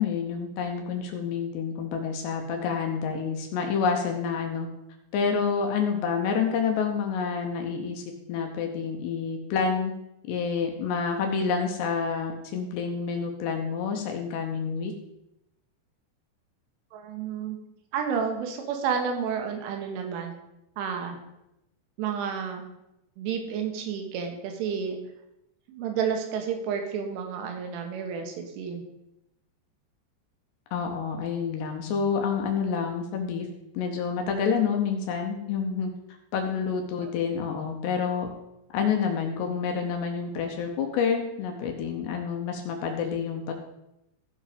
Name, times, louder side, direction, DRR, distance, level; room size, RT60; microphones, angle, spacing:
voice 1, 0.0-4.7 5.1-8.0 8.3-9.9 10.3-14.9 30.7-33.5 33.7-35.9 36.3-38.3 38.7-43.5, left 6 dB, 75° left, 3 dB, 2.8 m, -28 dB
voice 2, 16.9-17.6 17.9-20.3 20.8-21.2 22.0-22.6 23.2-25.0 25.7-28.8 37.0-37.1, right 7 dB, 90° right, 4 dB, 3.7 m, -30 dB
15.0 x 5.1 x 5.1 m, 0.88 s
omnidirectional pair, 5.4 m